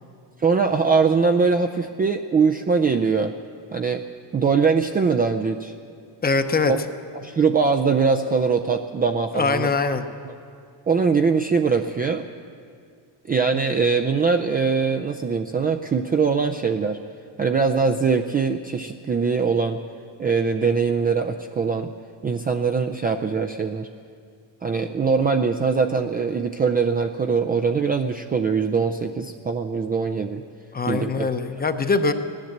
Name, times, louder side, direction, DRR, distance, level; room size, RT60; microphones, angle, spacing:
voice 1, 0.4-3.3 3.7-4.0 4.3-5.7 7.2-9.7 10.3-10.4 10.9-12.3 13.3-17.0 17.4-19.8 20.2-21.9 22.2-23.9 24.6-30.4 30.9-31.6, right 5 dB, 20° right, 4 dB, 0.4 m, -22 dB
voice 2, 6.2-6.7 9.3-10.0 30.7-32.1, left 4 dB, 20° left, 8 dB, 0.8 m, -22 dB
16.0 x 10.5 x 7.9 m, 2.3 s
cardioid pair, 125°, 46 cm